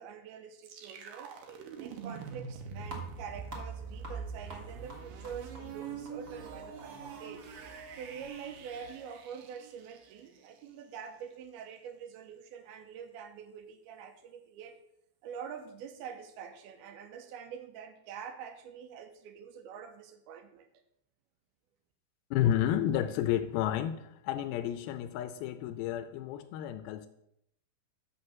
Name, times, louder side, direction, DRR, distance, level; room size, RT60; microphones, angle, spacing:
voice 1, 0.0-1.3 1.8-7.5 8.0-14.8 15.2-20.7, right 7 dB, 90° right, 7 dB, 2.8 m, -45 dB
sound 1, 0.6-10.5, right 6 dB, 70° right, 2.5 m, -44 dB
sound 2, 2.8-8.9, equal, 35° right, 1.0 m, -51 dB
voice 2, 22.3-27.1, left 11 dB, 85° left, 8 dB, 2.5 m, -31 dB
6.4 x 6.2 x 7.2 m, 0.76 s
omnidirectional pair, 4.3 m